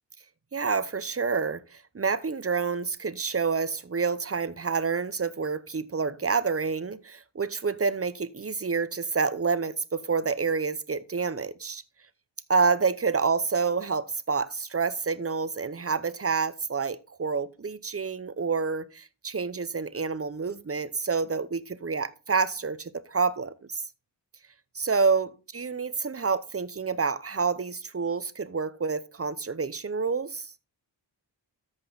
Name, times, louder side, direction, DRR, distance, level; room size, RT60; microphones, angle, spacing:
voice 1, 0.5-11.8 12.5-23.8 24.7-30.5, right 5 dB, 30° right, 0.7 m, -28 dB
13.5 x 5.3 x 3.9 m
wide cardioid pair, 60°, 45 cm